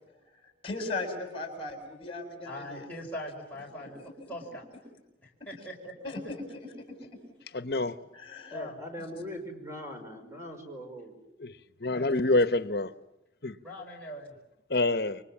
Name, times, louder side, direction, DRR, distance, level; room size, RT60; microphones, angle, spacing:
voice 1, 0.6-2.9 3.8-4.1 6.0-7.0 8.1-8.6 9.0-9.1 11.9-12.2, left 2 dB, 30° left, 7.0 m, -38 dB
voice 2, 2.4-4.6 5.2-6.1 8.5-8.7 11.9-12.2 13.6-14.4, equal, 10° left, 5.0 m, -41 dB
voice 3, 7.5-7.9 11.4-11.5 11.8-12.9 13.4-13.5 14.7-15.2, left 2 dB, 60° left, 1.0 m, -26 dB
voice 4, 8.5-11.2, left 1 dB, 15° right, 5.3 m, -41 dB
29.5 x 24.0 x 7.3 m
head